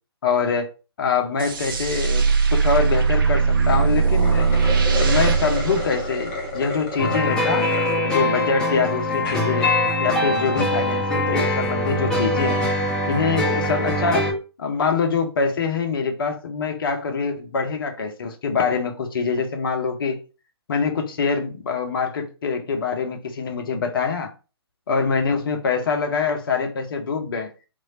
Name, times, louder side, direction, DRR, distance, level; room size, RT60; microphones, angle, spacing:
voice 1, 0.2-0.7 1.0-4.5 4.9-7.7 8.0-9.7 10.0-12.6 13.1-14.3 14.6-20.2 20.7-24.3 24.9-27.5, left 5 dB, 55° left, 0.7 m, -24 dB
Dramatic Hit, 1.4-6.7, right 5 dB, 55° right, 0.5 m, -20 dB
sound 1, 4.1-8.0 8.5-8.6 9.1-9.5, left 2 dB, 25° left, 0.9 m, -31 dB
sound 2, 7.0-14.3, left 1 dB, 5° left, 1.1 m, -23 dB
3.0 x 2.3 x 2.7 m
figure-of-eight pair, 130°, 14 cm